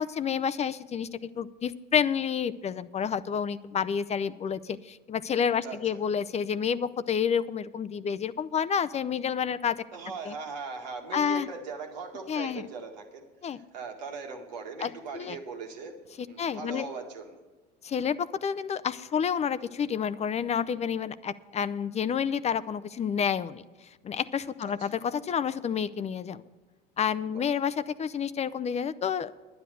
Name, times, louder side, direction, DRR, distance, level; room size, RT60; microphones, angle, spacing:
voice 1, 0.0-9.8 10.2-10.3 11.1-11.5 12.3-12.6 13.4-13.6 14.8-15.4 16.2-16.9 17.8-23.6 24.0-26.4 27.0-29.3, left 7 dB, 30° left, 14 dB, 0.5 m, -29 dB
voice 2, 9.9-16.0 16.2-17.4 24.6-24.9 27.3-27.4, right 4 dB, 85° right, 2 dB, 1.8 m, -40 dB
10.0 x 9.9 x 6.8 m, 1.2 s
hypercardioid pair, 80°, 21 cm